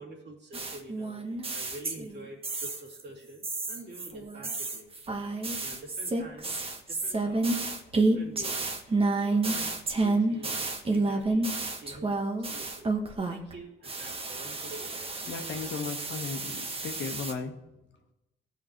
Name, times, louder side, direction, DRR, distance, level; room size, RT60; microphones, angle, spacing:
voice 1, 0.0-4.9 5.6-6.5 6.9-7.6 8.0-8.6 9.2-12.9 13.2-15.0, right 1 dB, 60° right, -2 dB, 2.8 m, -47 dB
sound 1, 0.5-2.1 2.4-3.0 3.4-13.5 13.8-17.3, right 3 dB, 30° right, 1.1 m, -30 dB
voice 2, 15.3-17.5, left 5 dB, 65° left, 4 dB, 1.2 m, -36 dB
15.0 x 5.9 x 3.1 m, 0.96 s
cardioid pair, 90°, 20 cm